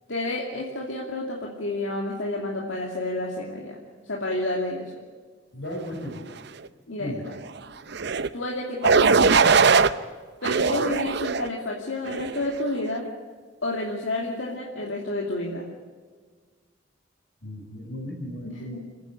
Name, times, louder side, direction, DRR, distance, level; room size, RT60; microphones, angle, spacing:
voice 1, 0.1-3.8 4.0-4.9 6.9-7.2 8.3-9.6 10.4-13.1 13.6-15.7 18.4-18.8, left 1 dB, 80° left, -2 dB, 2.7 m, -30 dB
voice 2, 5.5-6.2 7.0-7.2 17.4-18.8, equal, 60° left, 1 dB, 5.9 m, -35 dB
sound 1, 7.9-8.3 8.8-9.9 10.4-11.5 12.1-12.4, right 5 dB, 60° right, 0.7 m, -20 dB
28.5 x 10.5 x 9.9 m, 1.5 s
head